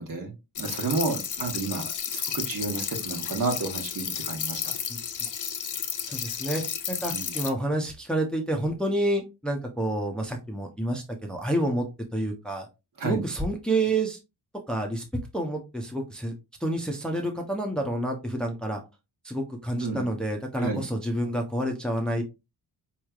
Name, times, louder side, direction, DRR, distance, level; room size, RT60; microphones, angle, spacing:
voice 1, 0.0-4.7 7.1-7.3 13.0-13.3 19.8-20.0 20.6-20.8, right 3 dB, 55° right, 3 dB, 1.2 m, -31 dB
sound 1, 0.5-7.5, left 8 dB, 50° left, 0.6 m, -32 dB
voice 2, 6.1-6.6 6.9-11.0 11.3-11.9 12.1-12.7 13.0-14.2 14.7-15.0 15.3-16.3 16.6-18.8 19.2-22.2, right 1 dB, ahead, 2 dB, 0.6 m, -28 dB
4.5 x 3.1 x 2.4 m, 0.25 s
wide cardioid pair, 110°, 40 cm